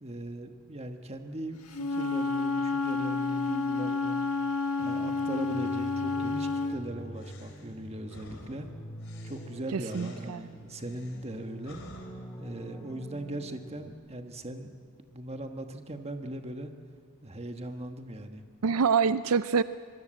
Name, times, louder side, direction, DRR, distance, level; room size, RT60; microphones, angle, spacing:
voice 1, 0.0-4.2 4.8-8.7 9.2-11.8 12.4-16.7 17.2-18.4, right 1 dB, 30° right, 6 dB, 1.5 m, -39 dB
Wind instrument woodwind instrument, 1.7-6.8, left 3 dB, 80° left, 1.6 m, -30 dB
sound 1, 4.8-13.9, right 1 dB, 15° left, 1.9 m, -45 dB
sound 2, 7.1-12.1, left 2 dB, 60° left, 4.0 m, -52 dB
voice 2, 9.7-10.5 18.6-19.6, right 5 dB, 75° right, 14 dB, 0.5 m, -26 dB
25.0 x 22.0 x 7.8 m, 2.2 s
head